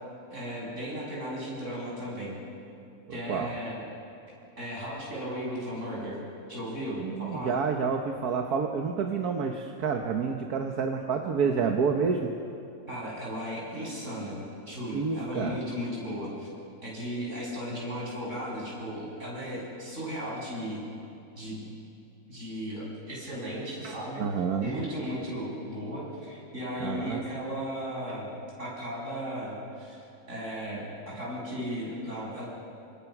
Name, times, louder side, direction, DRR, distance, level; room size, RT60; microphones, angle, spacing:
voice 1, 0.3-2.4 3.1-3.8 4.6-6.2 6.5-7.5 12.9-16.5 16.8-20.8 21.4-21.7 22.3-24.2 24.6-28.3 28.6-32.5, equal, 50° right, -4 dB, 8.0 m, -36 dB
voice 2, 3.1-3.5 7.0-12.3 14.9-15.6 23.8-24.7 26.8-27.2, right 5 dB, 80° right, 3 dB, 1.7 m, -29 dB
28.5 x 25.0 x 6.0 m, 2.6 s
omnidirectional pair, 1.6 m